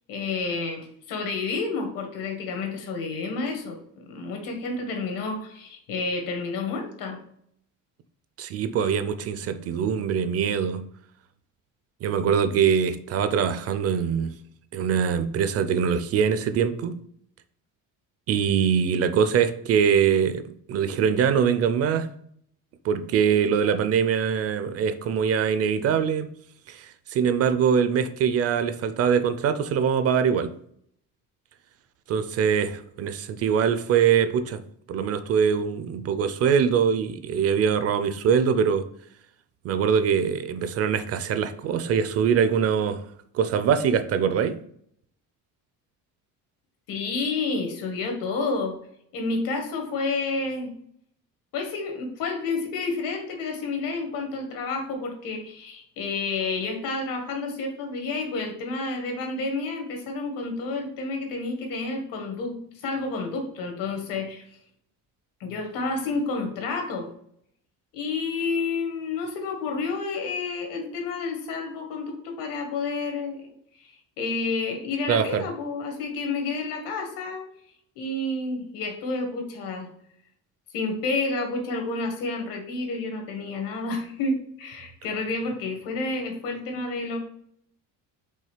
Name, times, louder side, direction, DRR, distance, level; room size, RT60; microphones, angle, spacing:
voice 1, 0.1-7.2 46.9-48.8 49.1-50.7 51.5-64.5 65.4-67.1 67.9-77.5 78.0-79.9 80.7-87.2, left 3 dB, 80° left, 1.7 m, -30 dB
voice 2, 8.4-10.9 12.0-14.3 14.7-17.0 18.3-20.4 20.7-22.1 22.8-26.3 26.7-30.5 32.1-34.6 34.9-38.9 39.6-43.0 43.3-44.6 75.1-75.4, right 7 dB, 45° right, 0.5 m, -23 dB
5.5 x 3.6 x 4.9 m
cardioid pair, 165°, 33 cm